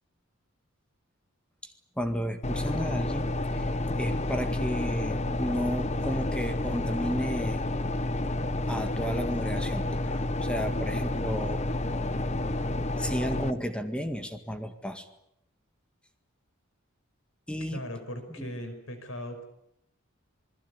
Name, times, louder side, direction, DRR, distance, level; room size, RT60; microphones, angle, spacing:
voice 1, 1.6-3.7 4.0-7.6 8.7-9.8 10.4-11.6 13.0-15.1 17.5-17.9 18.4-18.5, equal, 5° left, 8 dB, 1.9 m, -33 dB
sound 1, 2.4-13.5, left 1 dB, 30° left, 1.1 m, -30 dB
voice 2, 17.6-19.4, equal, 70° left, 8 dB, 5.5 m, -39 dB
27.5 x 21.0 x 8.4 m, 0.75 s
head